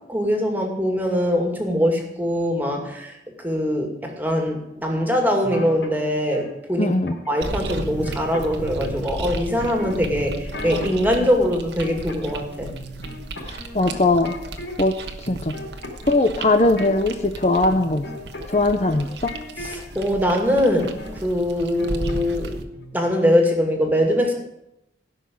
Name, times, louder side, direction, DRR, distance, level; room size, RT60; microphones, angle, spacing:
voice 1, 0.1-6.9 7.3-12.7 19.6-22.6 22.9-24.3, equal, 10° right, 2 dB, 2.4 m, -22 dB
sound 1, 5.4-6.5 7.1-7.4 7.7-9.0 9.6-11.1 11.5-12.4 12.7-14.9 15.2-20.1 20.5-21.2 21.5-22.5 22.7-23.0, left 1 dB, 75° left, 4.9 m, -37 dB
voice 2, 6.8-7.2 13.5-14.3 14.8-14.9 15.2-15.6 16.1-18.0 18.5-19.1, left 2 dB, 35° left, 6 dB, 0.7 m, -20 dB
sound 2, 7.4-22.6, right 1 dB, 65° right, 1.3 m, -34 dB
16.5 x 6.3 x 9.5 m, 0.87 s
head